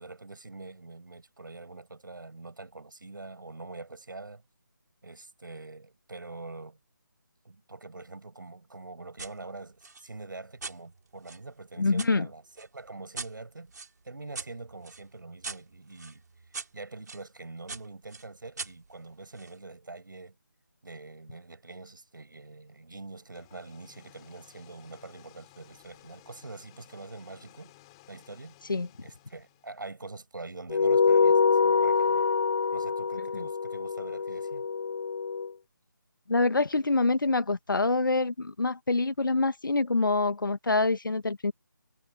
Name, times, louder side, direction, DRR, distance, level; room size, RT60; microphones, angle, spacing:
voice 1, 0.0-4.4 5.0-6.8 7.4-13.7 14.0-16.2 16.7-20.4 20.8-27.7 28.1-28.5 29.0-32.3 32.7-34.6, right 3 dB, 75° right, 6.9 m, -44 dB
sound 1, 9.2-9.4 9.8-12.1 12.6-17.2 17.7-19.6, right 4 dB, 60° right, 4.4 m, -43 dB
voice 2, 11.8-12.3 28.7-28.9 33.3-33.5 36.3-41.5, left 3 dB, 80° left, 1.5 m, -26 dB
sound 2, 23.2-29.9, left 20 dB, 15° left, 6.0 m, -57 dB
sound 3, 30.7-35.5, left 5 dB, 45° left, 0.4 m, -25 dB
figure-of-eight pair, 165°, 11 cm